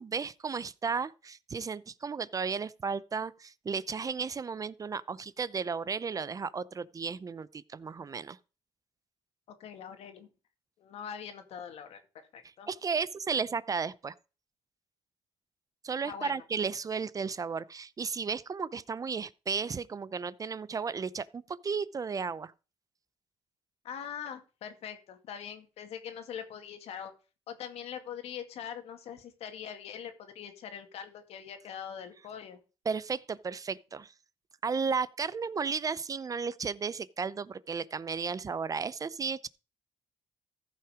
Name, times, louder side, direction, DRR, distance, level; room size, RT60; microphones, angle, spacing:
voice 1, 0.0-8.4 12.7-14.1 15.8-22.5 32.9-34.1 34.6-39.5, right 5 dB, 35° right, 0.6 m, -34 dB
voice 2, 9.6-10.3 10.8-12.0 12.3-12.7 16.0-16.4 23.8-27.1 27.5-32.6, left 8 dB, 80° left, 2.1 m, -42 dB
14.5 x 5.7 x 4.9 m
cardioid pair, 95°, 10 cm